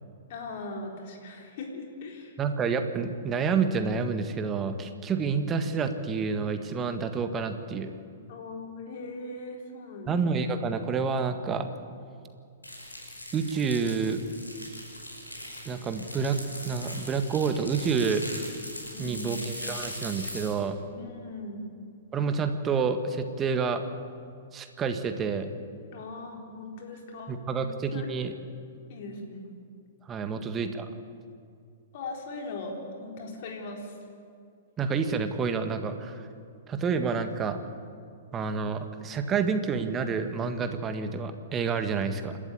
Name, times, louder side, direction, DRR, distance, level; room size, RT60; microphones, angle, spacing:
voice 1, 0.3-2.3 8.3-10.1 18.9-19.4 20.9-21.7 25.9-27.7 27.9-28.1 28.9-29.4 30.3-30.4 31.9-34.0, left 2 dB, 50° left, 1 dB, 4.3 m, -39 dB
voice 2, 2.4-7.9 10.1-11.7 13.3-14.2 15.6-16.4 16.6-18.2 19.0-20.8 22.1-23.8 24.5-25.5 27.3-28.3 30.1-30.9 34.8-36.3 36.7-37.6 38.3-42.4, right 5 dB, 20° right, 8 dB, 1.7 m, -28 dB
sound 1, 12.6-20.5, left 1 dB, 90° left, 5.5 m, -40 dB
28.0 x 13.0 x 8.4 m, 2.3 s
figure-of-eight pair, 110°, 0 cm